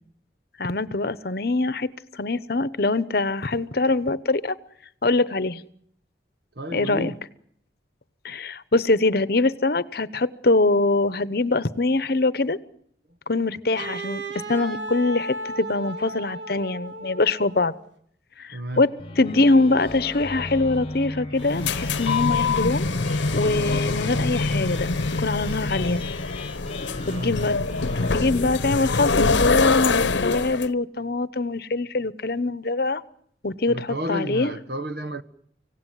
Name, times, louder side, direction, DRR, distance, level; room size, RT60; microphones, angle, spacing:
voice 1, 0.6-1.9 2.2-4.6 5.0-5.6 6.7-7.1 8.2-12.6 13.3-14.2 14.5-17.7 18.4-18.9 19.2-22.8 23.3-24.9 25.2-26.0 27.1-27.6 28.1-33.0 33.4-34.5, left 2 dB, 55° left, 0.9 m, -23 dB
voice 2, 6.5-7.2 18.5-18.9 27.0-27.5 30.5-30.6 33.7-35.2, equal, 55° right, 1.2 m, -32 dB
Wind instrument woodwind instrument, 13.8-17.8, right 1 dB, 80° right, 1.9 m, -35 dB
sound 1, 18.7-29.6, left 2 dB, 30° left, 1.3 m, -36 dB
sound 2, 21.4-30.7, left 3 dB, 85° left, 0.9 m, -24 dB
25.5 x 17.0 x 9.3 m
head